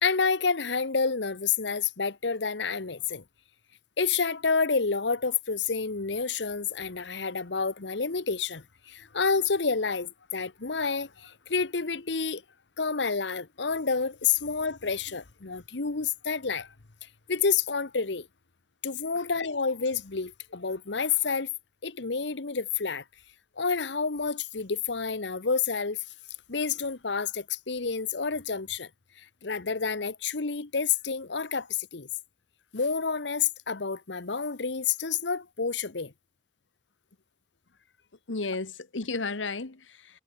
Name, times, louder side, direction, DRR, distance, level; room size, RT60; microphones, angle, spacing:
voice 1, 0.0-3.2 4.0-12.4 12.8-16.7 17.0-18.3 18.8-21.5 21.8-23.0 23.6-26.0 26.5-28.9 29.2-32.1 32.7-36.1, left 5 dB, 70° left, 1.1 m, -29 dB
voice 2, 38.3-40.2, left 3 dB, 90° left, 1.4 m, -33 dB
head